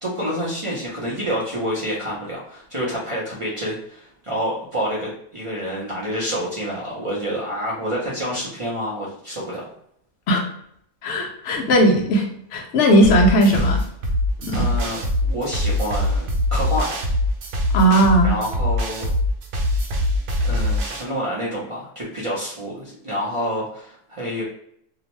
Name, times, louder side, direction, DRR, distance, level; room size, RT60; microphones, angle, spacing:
voice 1, 0.0-9.7 14.5-16.9 18.2-19.1 20.4-24.4, equal, 40° right, -6 dB, 0.5 m, -28 dB
voice 2, 11.0-12.2 12.5-13.8 14.4-14.7 17.7-18.3, right 1 dB, 65° left, 2 dB, 0.9 m, -17 dB
sound 1, 13.0-21.0, left 1 dB, 75° right, 1.0 m, -23 dB
2.8 x 2.1 x 3.0 m, 0.69 s
omnidirectional pair, 1.4 m